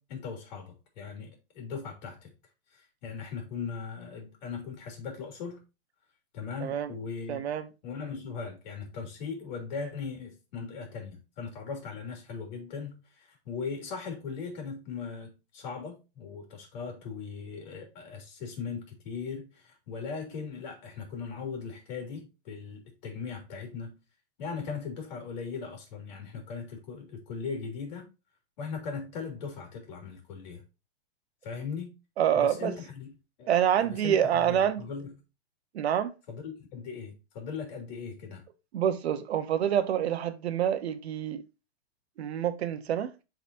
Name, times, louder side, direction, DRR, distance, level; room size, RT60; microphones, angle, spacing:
voice 1, 0.0-2.3 2.7-5.6 6.3-7.4 7.8-23.9 24.4-28.1 28.6-30.6 31.4-31.9 32.3-33.1 33.4-33.5 33.8-35.1 36.3-38.4, left 5 dB, 45° left, 2.8 m, -39 dB
voice 2, 6.6-6.9 7.3-7.7 32.2-32.7 33.5-34.8 35.7-36.1 38.7-41.4 42.2-43.1, right 9 dB, 85° right, 1.0 m, -27 dB
11.0 x 4.0 x 2.6 m
supercardioid pair, 170°, 31 cm